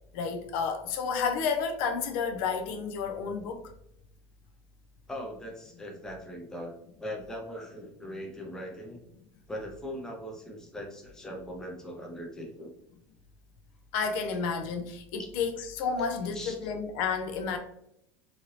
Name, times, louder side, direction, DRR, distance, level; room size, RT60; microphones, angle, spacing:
voice 1, 0.1-3.6 13.9-17.6, left 5 dB, 60° left, 6 dB, 0.4 m, -31 dB
voice 2, 5.1-6.7 7.0-9.0 9.5-12.7 15.2-15.3 16.3-16.7, equal, 5° left, 0 dB, 0.5 m, -40 dB
2.7 x 2.6 x 3.0 m, 0.78 s
supercardioid pair, 150°, 9 cm